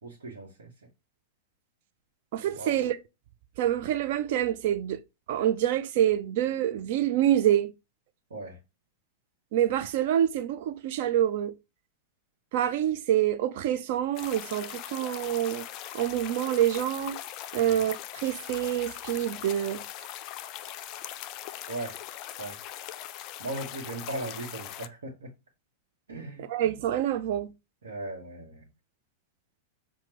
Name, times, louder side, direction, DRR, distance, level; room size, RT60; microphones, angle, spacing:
voice 1, 0.0-0.9 2.5-2.8 8.3-8.6 17.6-17.8 21.7-22.0 22.4-22.6 23.4-25.3 26.1-26.5 27.8-28.7, right 2 dB, 70° right, 1.0 m, -38 dB
voice 2, 2.3-3.0 3.6-5.0 5.3-7.7 9.5-11.5 12.5-15.6 15.9-17.2 17.5-19.8 26.5-27.5, right 11 dB, 50° right, 0.4 m, -26 dB
sound 1, 14.2-24.9, left 12 dB, 40° left, 0.3 m, -40 dB
5.8 x 2.2 x 2.9 m
figure-of-eight pair, 95°, 0 cm